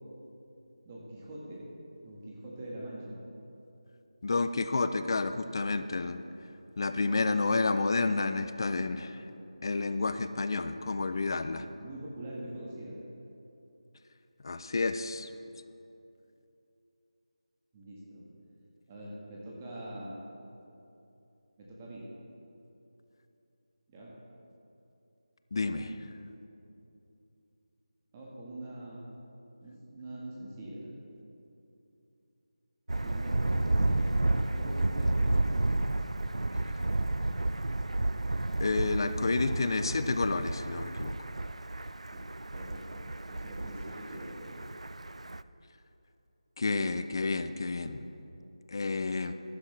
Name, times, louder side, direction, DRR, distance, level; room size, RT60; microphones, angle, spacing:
voice 1, 0.8-1.6 2.0-3.2 11.8-13.0 17.7-18.3 18.9-20.2 21.6-22.1 23.9-24.1 25.6-26.1 28.1-29.0 29.6-31.0 32.9-35.4 42.1-42.2 42.5-44.7, right 1 dB, 20° right, -5 dB, 1.6 m, -43 dB
voice 2, 4.2-6.2 6.8-9.2 9.6-11.6 14.4-15.3 25.5-25.9 38.6-41.1 46.6-48.0 48.7-49.3, left 3 dB, 45° left, 10 dB, 0.6 m, -30 dB
Thunder, 32.9-45.4, right 2 dB, 90° right, 0.4 m, -31 dB
15.5 x 11.5 x 3.4 m, 2.8 s
figure-of-eight pair, 165°, 3 cm